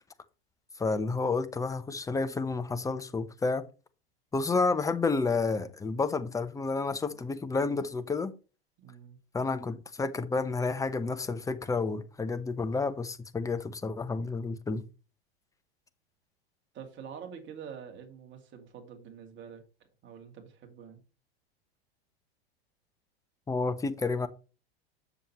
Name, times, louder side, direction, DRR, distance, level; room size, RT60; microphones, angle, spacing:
voice 1, 0.8-3.6 4.3-8.3 9.3-14.8 23.5-24.3, left 3 dB, 10° left, 0.8 m, -30 dB
voice 2, 8.8-9.2 16.7-19.6 20.0-21.0, right 7 dB, 35° right, 2.5 m, -46 dB
7.3 x 7.1 x 3.0 m
hypercardioid pair, 100°, 31 cm